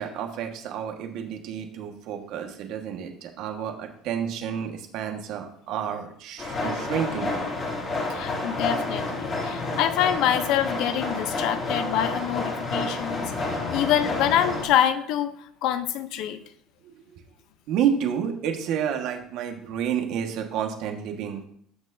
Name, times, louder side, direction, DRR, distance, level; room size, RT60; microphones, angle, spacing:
voice 1, 0.0-7.4 16.8-16.9 17.7-21.4, right 8 dB, 70° right, 4 dB, 1.6 m, -30 dB
sound 1, 6.4-14.7, left 2 dB, 40° left, 2.9 m, -29 dB
voice 2, 8.1-16.4, left 10 dB, 70° left, 11 dB, 0.8 m, -26 dB
13.5 x 6.3 x 2.7 m, 0.65 s
supercardioid pair, 95°, 0 cm